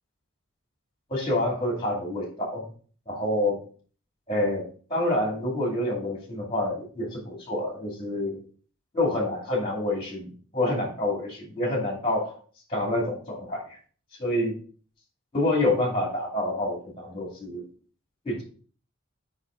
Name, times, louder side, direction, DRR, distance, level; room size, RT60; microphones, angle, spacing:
voice 1, 1.1-2.7 3.1-3.6 4.3-4.6 4.9-8.4 8.9-12.4 12.7-13.6 14.2-14.5 15.3-17.6 18.2-18.4, left 1 dB, 25° left, -1 dB, 2.4 m, -27 dB
6.4 x 5.2 x 3.8 m, 0.42 s
head